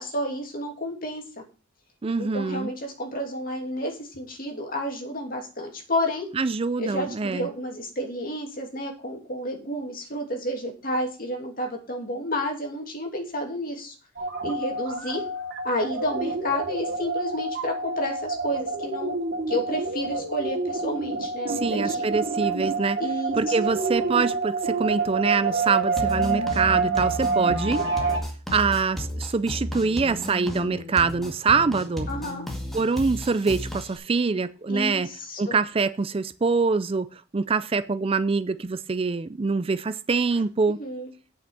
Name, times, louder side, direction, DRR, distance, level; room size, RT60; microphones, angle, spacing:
voice 1, 0.0-1.4 2.2-6.3 6.8-13.9 14.4-15.2 15.6-19.2 19.5-22.1 23.0-23.4 23.7-23.8 27.4-27.8 32.1-32.5 34.7-35.6 40.7-41.1, left 1 dB, 45° left, 2.7 m, -31 dB
voice 2, 2.0-2.7 6.3-7.5 21.5-23.0 23.3-27.8 28.5-32.1 32.7-35.1 35.4-40.8, right 4 dB, 30° right, 0.4 m, -25 dB
sound 1, 14.2-28.2, right 4 dB, 55° right, 2.6 m, -28 dB
sound 2, 26.0-34.0, left 1 dB, ahead, 1.9 m, -33 dB
8.8 x 6.1 x 6.9 m
head